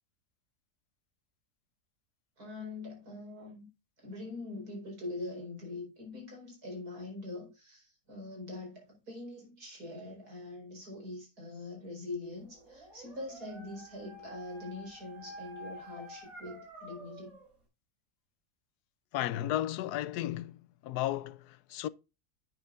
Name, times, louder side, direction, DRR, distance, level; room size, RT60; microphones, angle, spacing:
voice 1, 2.4-3.7 4.0-17.4, left 2 dB, 80° right, 5.1 m, -43 dB
Dog, 12.4-17.5, right 1 dB, 65° right, 5.9 m, -49 dB
voice 2, 19.1-21.9, left 13 dB, 90° left, 1.1 m, -34 dB
11.0 x 8.9 x 2.5 m
omnidirectional pair, 1.6 m